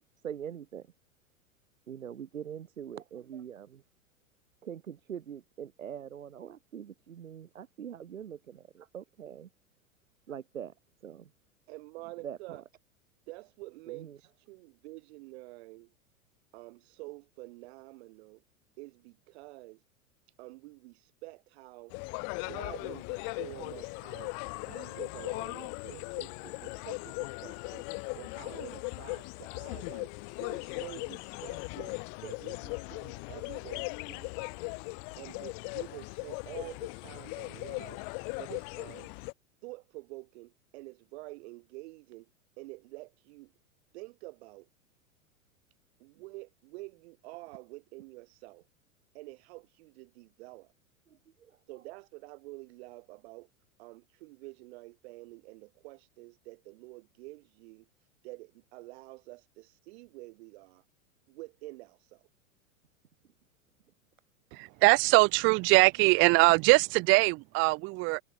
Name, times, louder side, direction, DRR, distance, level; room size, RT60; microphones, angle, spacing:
voice 1, 0.2-0.9 1.9-3.8 4.6-9.5 10.3-10.7 11.0-11.3 12.2-12.6 13.9-14.2 51.1-51.6, right 9 dB, 70° right, 5.7 m, -43 dB
voice 2, 11.7-12.6 13.3-15.9 16.5-18.4 18.8-19.8 20.4-22.0 22.5-24.3 24.6-27.9 28.1-30.1 30.4-34.6 35.2-38.0 38.4-39.1 39.6-42.3 42.6-43.5 43.9-44.7 46.0-48.7 49.1-50.7 51.7-53.5 53.8-57.9 58.2-60.8 61.3-62.3, right 22 dB, 50° right, 5.3 m, -48 dB
sound 1, 21.9-39.3, left 40 dB or more, 40° left, 1.0 m, -39 dB
voice 3, 64.5-68.2, right 26 dB, 30° right, 0.7 m, -22 dB
figure-of-eight pair, 95°, 41 cm